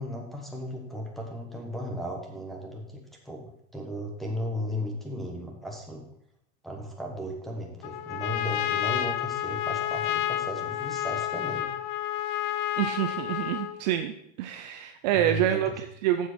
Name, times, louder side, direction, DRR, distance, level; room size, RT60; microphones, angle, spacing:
voice 1, 0.0-6.0 6.6-11.7 15.1-15.6, equal, ahead, 1 dB, 1.1 m, -36 dB
Trumpet, 7.8-13.8, left 12 dB, 45° left, 0.6 m, -30 dB
voice 2, 12.8-14.1 14.4-16.3, right 11 dB, 40° right, 7 dB, 0.5 m, -27 dB
7.4 x 7.3 x 6.1 m, 0.71 s
supercardioid pair, 170°, 34 cm